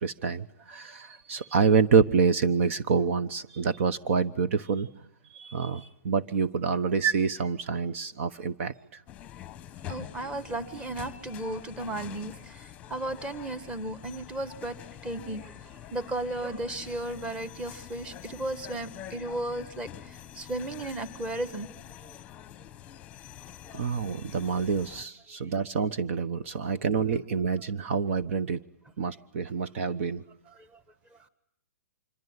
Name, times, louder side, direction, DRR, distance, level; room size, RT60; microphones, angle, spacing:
voice 1, 0.0-4.9 5.3-9.0 23.7-28.6 29.0-30.2, right 5 dB, 50° right, 14 dB, 1.1 m, -27 dB
sound 1, 9.1-25.1, left 11 dB, 15° left, 1.1 m, -45 dB
voice 2, 9.9-14.7 15.0-21.7 30.5-30.8, right 2 dB, 10° right, 13 dB, 1.6 m, -35 dB
26.5 x 23.5 x 9.7 m, 0.68 s
hypercardioid pair, 160°, 9 cm